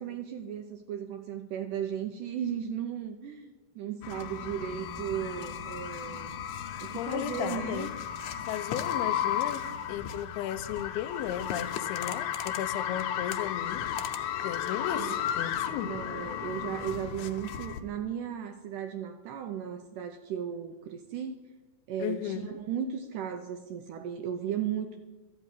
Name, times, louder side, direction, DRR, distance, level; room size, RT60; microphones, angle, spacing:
voice 1, 0.0-6.4 6.8-7.9 14.9-15.1 15.8-21.3 21.9-25.0, right 9 dB, 80° right, 1.9 m, -36 dB
sound 1, 4.0-17.8, left 9 dB, 70° left, 2.0 m, -34 dB
voice 2, 7.0-7.9 8.5-13.8 14.4-16.0 22.0-22.4, left 11 dB, 85° left, 2.6 m, -35 dB
14.0 x 5.9 x 9.8 m
omnidirectional pair, 4.4 m